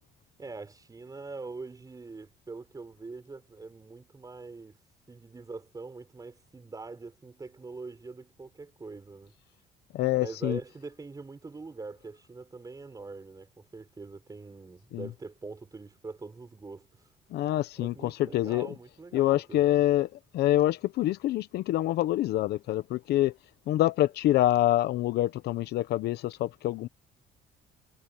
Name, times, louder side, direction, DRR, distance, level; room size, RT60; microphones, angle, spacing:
voice 1, 0.4-4.8 5.1-9.3 10.2-17.1 17.8-19.6, right 3 dB, 20° right, 5.4 m, -43 dB
voice 2, 9.9-10.6 14.9-15.1 17.3-18.7 19.1-23.3 23.7-26.9, left 14 dB, 75° left, 1.0 m, -26 dB
cardioid pair, 110°, 17 cm